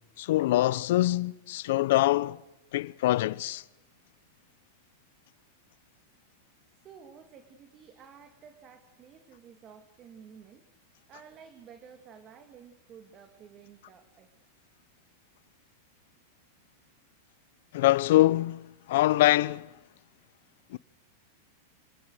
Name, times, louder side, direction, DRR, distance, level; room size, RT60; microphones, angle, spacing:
voice 1, 0.2-2.4 2.7-3.6 17.7-18.6 18.9-19.7 20.7-20.8, left 15 dB, 70° left, 0.7 m, -24 dB
voice 2, 6.7-10.7 11.1-14.3, right 7 dB, 35° right, 2.3 m, -52 dB
26.5 x 19.0 x 6.4 m
hypercardioid pair, 125°, 0 cm